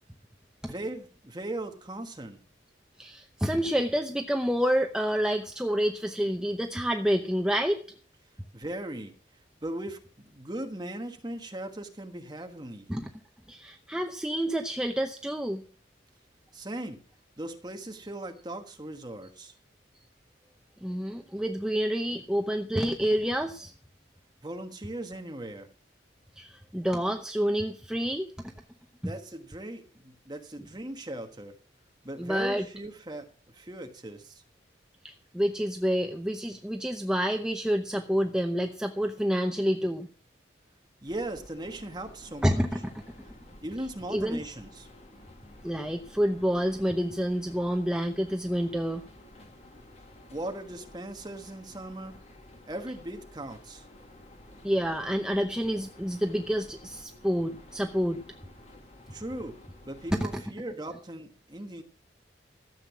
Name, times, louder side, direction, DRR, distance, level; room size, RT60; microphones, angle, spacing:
voice 1, 0.6-2.4 8.5-9.1 9.6-12.9 16.5-17.0 17.4-19.5 24.4-25.7 29.0-31.5 32.0-33.3 33.5-34.4 41.0-42.6 43.6-44.9 50.3-52.2 52.7-53.8 59.1-59.6 59.8-61.8, right 1 dB, 20° right, 5 dB, 1.4 m, -38 dB
voice 2, 3.0-7.8 12.9-13.1 13.5-15.6 20.8-23.7 26.4-28.3 32.2-32.6 35.0-40.1 42.4-43.1 44.1-44.5 45.6-49.0 54.6-58.2 60.1-60.4, equal, 5° right, 4 dB, 0.7 m, -28 dB
sound 1, 41.1-60.5, left 1 dB, 35° left, 1.7 m, -52 dB
13.5 x 7.6 x 6.1 m, 0.43 s
head